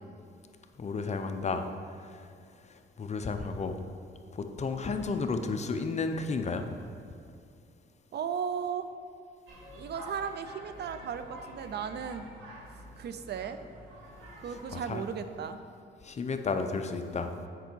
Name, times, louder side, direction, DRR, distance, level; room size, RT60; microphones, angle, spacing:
voice 1, 0.8-1.7 2.1-2.2 3.0-3.8 4.3-6.7 14.7-15.0 16.0-17.3, left 4 dB, 35° left, 7 dB, 0.6 m, -32 dB
voice 2, 8.1-8.9 9.7-12.3 13.0-13.6 14.4-15.6, right 7 dB, 55° right, 9 dB, 0.5 m, -35 dB
sound 1, 9.5-14.8, right 1 dB, 90° right, 2.1 m, -48 dB
8.1 x 5.5 x 4.5 m, 2.4 s
cardioid pair, 90°, 20 cm